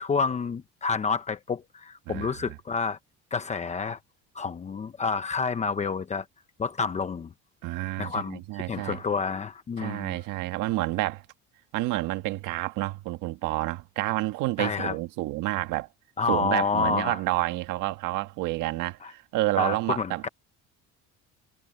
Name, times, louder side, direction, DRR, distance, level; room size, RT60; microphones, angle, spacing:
voice 1, 0.0-3.0 3.3-4.0 4.3-6.2 6.6-7.3 8.0-8.4 8.7-10.1 14.6-14.9 16.2-17.2 19.0-19.1 19.6-20.3, left 5 dB, 20° left, 0.9 m, -29 dB
voice 2, 2.1-2.6 7.6-9.0 9.8-11.2 11.7-15.9 16.2-20.3, right 17 dB, 75° right, 1.6 m, -29 dB
cardioid pair, 155°, 32 cm